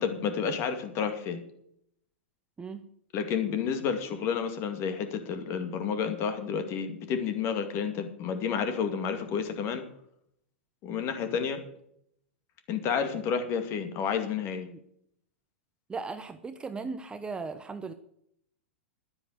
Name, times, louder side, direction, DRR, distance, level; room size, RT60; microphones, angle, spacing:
voice 1, 0.0-1.4 3.1-9.9 10.8-11.6 12.7-14.7, left 7 dB, 40° left, 7 dB, 2.2 m, -30 dB
voice 2, 15.9-17.9, right 4 dB, 15° right, 10 dB, 0.8 m, -37 dB
10.5 x 9.7 x 8.0 m, 0.72 s
hypercardioid pair, 105°, 7 cm